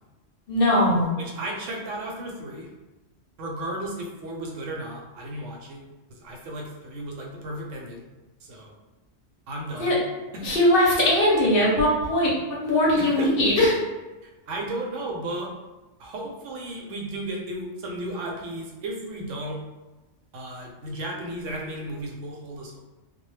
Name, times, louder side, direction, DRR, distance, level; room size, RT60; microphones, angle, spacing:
voice 1, 0.5-1.1 9.8-9.9 10.4-12.3 12.6-13.7, left 1 dB, 55° left, -4 dB, 0.7 m, -20 dB
voice 2, 1.2-2.7 3.4-5.8 6.1-8.0 8.4-8.7 9.5-10.0 10.3-10.5 13.0-13.3 14.2-15.5 16.0-19.6 20.3-22.8, right 1 dB, 80° right, 0 dB, 0.9 m, -34 dB
2.1 x 2.1 x 3.1 m, 1.1 s
omnidirectional pair, 1.3 m